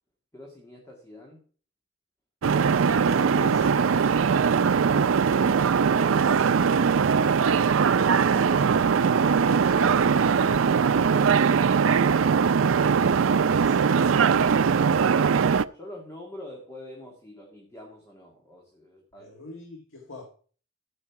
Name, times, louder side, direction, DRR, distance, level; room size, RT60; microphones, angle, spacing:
voice 1, 0.3-1.4 10.2-10.7 15.7-19.3, left 1 dB, 15° left, -1 dB, 2.0 m, -45 dB
sound 1, 2.4-15.6, right 6 dB, 85° right, 0.4 m, -21 dB
voice 2, 3.1-3.8 13.1-14.1 19.2-20.3, left 1 dB, 80° left, 2 dB, 1.7 m, -41 dB
13.5 x 5.5 x 5.8 m, 0.41 s
head